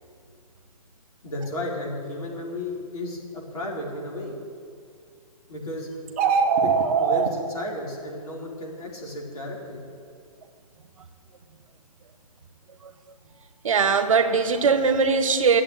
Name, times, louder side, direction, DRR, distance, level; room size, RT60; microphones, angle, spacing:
voice 1, 1.2-4.4 5.5-5.9 6.6-6.7 7.0-9.8, left 1 dB, 70° left, -2 dB, 4.7 m, -33 dB
sound 1, 6.1-7.3, right 6 dB, 20° right, 1.0 m, -21 dB
voice 2, 13.6-15.6, right 5 dB, 60° right, 8 dB, 1.3 m, -20 dB
14.5 x 7.7 x 9.4 m, 2.2 s
hypercardioid pair, 175°, 19 cm